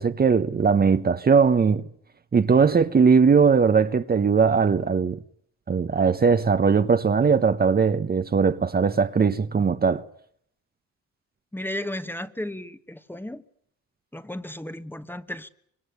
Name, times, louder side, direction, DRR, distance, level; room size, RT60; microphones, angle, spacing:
voice 1, 0.0-1.8 2.3-5.2 5.7-10.0, right 5 dB, 30° right, 1.0 m, -20 dB
voice 2, 11.5-13.4 14.1-15.5, left 1 dB, 5° left, 1.3 m, -34 dB
25.5 x 20.5 x 8.2 m
cardioid pair, 90°, 30 cm